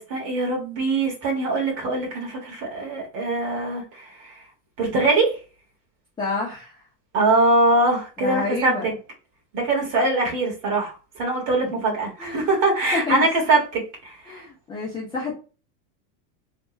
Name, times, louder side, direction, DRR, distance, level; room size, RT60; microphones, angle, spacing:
voice 1, 0.0-4.3 4.8-5.4 7.1-8.7 9.5-14.4, right 2 dB, 40° right, 0 dB, 1.7 m, -22 dB
voice 2, 6.2-6.7 8.2-8.9 12.2-12.5 12.9-13.3 14.3-15.3, left 4 dB, 10° left, -7 dB, 0.7 m, -28 dB
3.4 x 2.4 x 3.1 m, 0.33 s
supercardioid pair, 155°, 49 cm